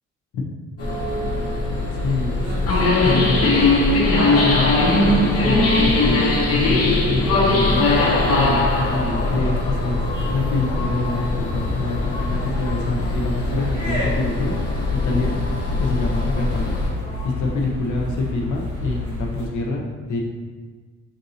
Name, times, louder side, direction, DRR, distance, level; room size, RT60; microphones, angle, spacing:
sound 1, 0.8-16.9, left 2 dB, 50° left, 1.1 m, -21 dB
voice 1, 2.0-2.5 3.0-3.7 4.3-7.9 8.3-10.0 10.3-14.6 15.0-15.4 15.8-16.7 17.2-20.2, left 3 dB, 75° left, -1 dB, 0.9 m, -26 dB
sound 2, 2.3-19.5, equal, 65° right, 1.3 m, -32 dB
sound 3, 5.2-17.7, left 2 dB, 20° left, 0.6 m, -36 dB
5.8 x 2.6 x 2.7 m, 1.4 s
cardioid pair, 90°, 30 cm